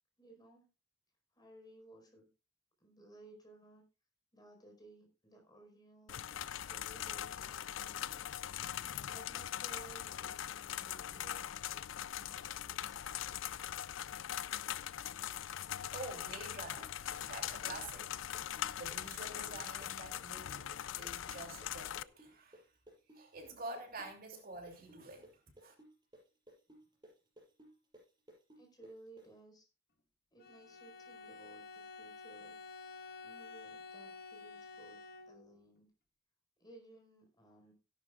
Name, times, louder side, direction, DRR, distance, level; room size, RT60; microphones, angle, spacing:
voice 1, 0.2-0.6 1.3-2.3 2.8-3.8 4.3-8.3 9.0-13.0 26.7-26.8 28.6-29.7 30.3-32.5 33.2-35.0 35.3-35.9 36.6-37.7, right 2 dB, 20° left, 4.9 m, -59 dB
sound 1, 6.1-22.0, left 11 dB, 85° left, 0.4 m, -41 dB
voice 2, 15.9-18.1 18.5-20.7 21.0-22.6 23.1-25.3 25.6-25.7, right 2 dB, 50° right, 2.9 m, -48 dB
sound 2, 16.8-24.4 24.7-29.3, right 1 dB, 25° right, 6.1 m, -58 dB
Bowed string instrument, 30.4-35.7, left 4 dB, 55° left, 1.4 m, -51 dB
17.0 x 11.5 x 2.4 m
head